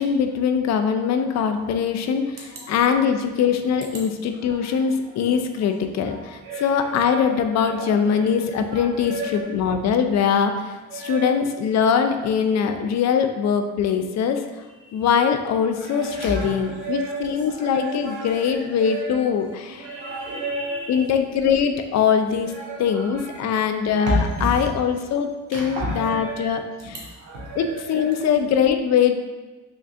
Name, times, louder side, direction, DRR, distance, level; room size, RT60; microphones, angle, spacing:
voice 1, 0.0-14.4 14.9-19.9 20.9-22.5 22.8-27.0 27.5-29.2, left 7 dB, 60° left, 7 dB, 0.4 m, -22 dB
voice 2, 6.4-7.4 7.7-9.6 10.9-11.4 15.9-17.3 17.6-18.5 18.8-19.2 19.8-21.0 22.6-23.0 24.0-24.5 25.5-26.6 27.2-27.8, right 1 dB, 85° right, -4 dB, 1.2 m, -31 dB
3.9 x 3.2 x 2.4 m, 1.2 s
cardioid pair, 90°, 30 cm